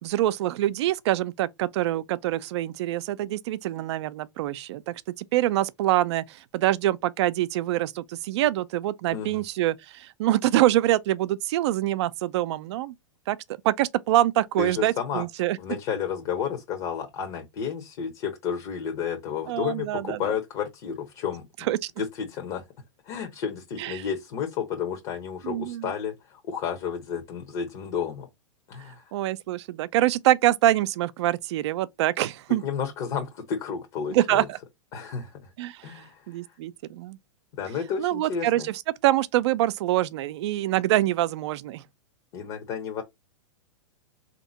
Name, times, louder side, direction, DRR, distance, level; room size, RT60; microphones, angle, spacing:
voice 1, 0.0-12.9 13.3-13.4 13.6-15.6 19.5-20.2 21.7-21.9 23.8-24.0 25.4-25.9 29.1-32.6 34.1-34.6 35.6-35.9 36.3-37.2 38.0-38.7 39.0-41.8, right 14 dB, 60° right, 0.5 m, -25 dB
voice 2, 9.1-9.4 14.6-15.2 15.6-21.7 22.0-22.7 23.0-28.3 28.7-29.1 32.6-34.5 34.9-35.5 35.8-36.6 37.5-38.7 42.3-43.0, left 7 dB, 45° left, 1.0 m, -32 dB
3.5 x 2.9 x 4.0 m
hypercardioid pair, 120°, 16 cm